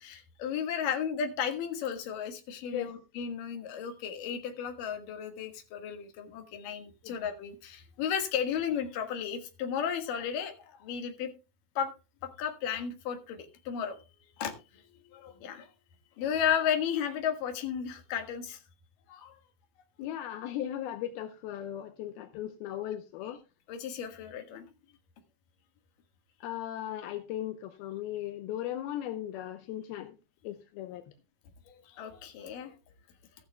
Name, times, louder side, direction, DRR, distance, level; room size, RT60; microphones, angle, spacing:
voice 1, 0.0-11.3 11.8-11.9 12.2-14.0 14.4-14.5 15.1-15.7 16.2-18.6 19.1-19.4 23.7-24.7 31.7-32.7, left 8 dB, 65° left, 6 dB, 3.1 m, -34 dB
voice 2, 20.0-23.4 26.4-30.2 30.4-31.1, left 12 dB, 80° left, 8 dB, 2.7 m, -37 dB
14.5 x 13.0 x 2.2 m, 0.29 s
omnidirectional pair, 4.3 m